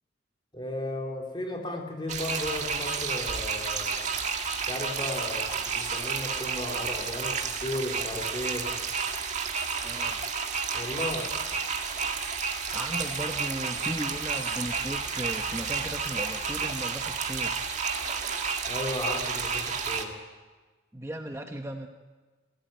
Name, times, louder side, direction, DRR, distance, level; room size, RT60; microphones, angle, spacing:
voice 1, 0.5-4.1 4.6-8.7 10.7-11.3 18.7-20.1, left 1 dB, 25° left, 1 dB, 3.5 m, -35 dB
sound 1, 2.1-20.0, right 5 dB, 40° right, 1.9 m, -31 dB
sound 2, 7.2-7.3 8.3-8.4 10.7-10.9 11.9-12.1 14.3-14.7 15.5-15.9 17.9-18.6 19.1-19.8, right 4 dB, 70° right, 3.1 m, -47 dB
voice 2, 9.8-10.3 12.7-17.6 20.9-21.9, right 1 dB, 15° right, 4 dB, 1.0 m, -36 dB
27.0 x 16.0 x 9.3 m, 1.3 s
head